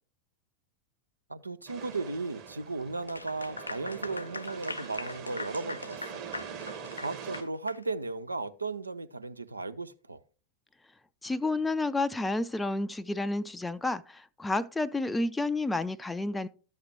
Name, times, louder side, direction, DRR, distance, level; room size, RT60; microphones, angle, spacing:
voice 1, 1.3-6.2 6.9-10.2, right 3 dB, 80° right, 0.5 m, -36 dB
sound 1, 1.7-7.4, right 7 dB, 40° right, 1.4 m, -43 dB
Clapping / Applause, 3.0-7.8, left 3 dB, 80° left, 0.4 m, -41 dB
voice 2, 11.2-16.5, left 2 dB, 10° left, 0.4 m, -30 dB
12.0 x 6.5 x 3.1 m
figure-of-eight pair, 90°, 0 cm